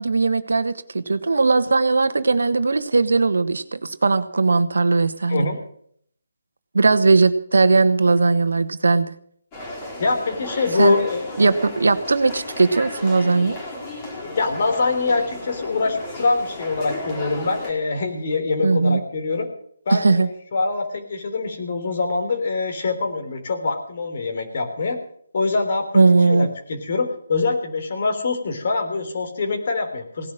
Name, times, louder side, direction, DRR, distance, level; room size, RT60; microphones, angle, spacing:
voice 1, 0.0-5.5 6.7-9.1 10.8-11.0 11.4-13.6 18.6-19.0 19.9-20.3 25.9-26.5, right 3 dB, 70° right, 11 dB, 1.3 m, -18 dB
sound 1, 9.5-17.7, left 1 dB, 25° left, 4.3 m, -34 dB
voice 2, 10.0-11.2 14.4-19.5 19.9-25.0 25.3-30.3, left 3 dB, 50° left, 5 dB, 3.5 m, -24 dB
18.0 x 10.5 x 6.4 m, 0.63 s
figure-of-eight pair, 150°, 0 cm